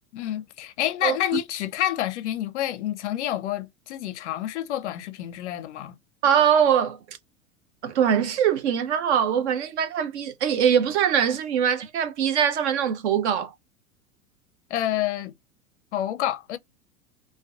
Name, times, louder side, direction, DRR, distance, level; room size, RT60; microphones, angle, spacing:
voice 1, 0.1-6.0 14.7-15.3 15.9-16.6, left 12 dB, 55° left, 0.5 m, -28 dB
voice 2, 6.2-7.0 7.8-13.5, right 8 dB, 50° right, 0.6 m, -22 dB
2.3 x 2.2 x 2.4 m
figure-of-eight pair, 95°, 43 cm